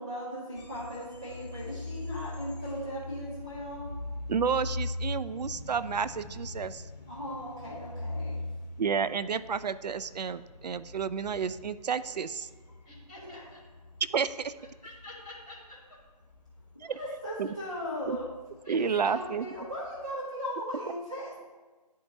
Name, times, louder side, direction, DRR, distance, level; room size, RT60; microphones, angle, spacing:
voice 1, 0.0-3.9 7.1-8.4 9.1-9.2 13.2-13.4 16.8-18.3 18.7-21.4, equal, 10° right, -12 dB, 0.4 m, -38 dB
sound 1, 0.5-20.1, left 2 dB, 75° left, 1.1 m, -42 dB
voice 2, 3.7-4.4 5.1-5.8 6.5-7.1 8.2-8.8 9.6-11.4 12.3-14.0 14.6-17.1 18.6-19.2, left 1 dB, 10° left, -13 dB, 2.1 m, -53 dB
voice 3, 4.3-6.8 8.8-12.5 14.1-14.5 16.8-17.0 17.4-17.5 18.1-18.2 18.7-19.5, right 6 dB, 75° right, 16 dB, 0.4 m, -31 dB
10.5 x 4.6 x 2.7 m, 1.3 s
figure-of-eight pair, 160°, 21 cm